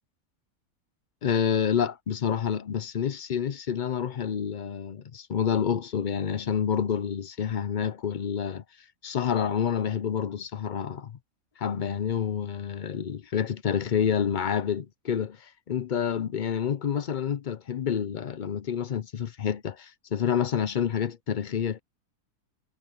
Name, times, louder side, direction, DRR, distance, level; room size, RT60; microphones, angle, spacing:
voice 1, 1.2-8.6 9.0-11.2 11.6-21.8, left 8 dB, 50° left, 0.6 m, -28 dB
omnidirectional pair, 1.5 m